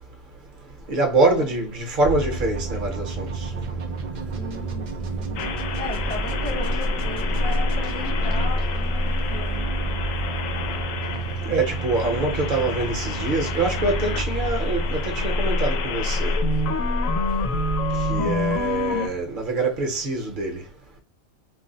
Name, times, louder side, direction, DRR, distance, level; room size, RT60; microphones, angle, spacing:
voice 1, 0.9-3.5 11.4-16.3 18.1-20.6, right 2 dB, 45° right, 0.8 m, -24 dB
sound 1, 2.0-19.8, right 1 dB, 65° right, 0.4 m, -28 dB
voice 2, 4.3-5.5 5.8-10.0, left 2 dB, 15° left, 0.3 m, -37 dB
sound 2, 5.4-19.1, left 4 dB, 85° left, 1.0 m, -30 dB
2.6 x 2.0 x 3.8 m
omnidirectional pair, 1.3 m